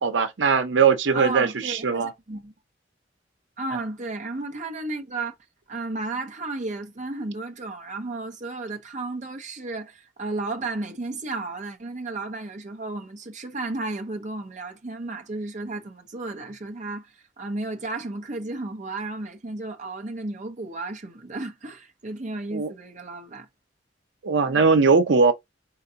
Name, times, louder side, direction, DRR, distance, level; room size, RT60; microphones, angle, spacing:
voice 1, 0.0-2.1 22.5-22.7 24.2-25.3, right 5 dB, 80° right, 0.6 m, -20 dB
voice 2, 1.1-2.5 3.6-5.3 5.7-23.5 24.4-24.6, right 2 dB, 40° right, 0.8 m, -33 dB
4.5 x 3.9 x 2.8 m
head